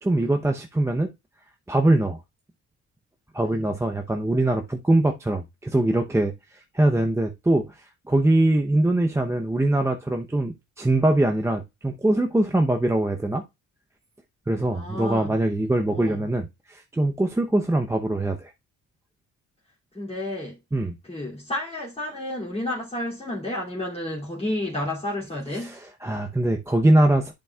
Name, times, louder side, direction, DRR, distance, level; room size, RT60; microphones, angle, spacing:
voice 1, 0.0-1.1 1.7-2.2 3.3-6.3 6.7-13.4 14.5-18.5 20.7-20.9 25.6-27.3, right 1 dB, 10° right, 0.8 m, -22 dB
voice 2, 14.7-15.4 15.9-16.2 19.9-20.6 21.0-25.8, left 1 dB, 20° left, 2.7 m, -31 dB
11.0 x 5.3 x 2.3 m
cardioid pair, 90°, 30 cm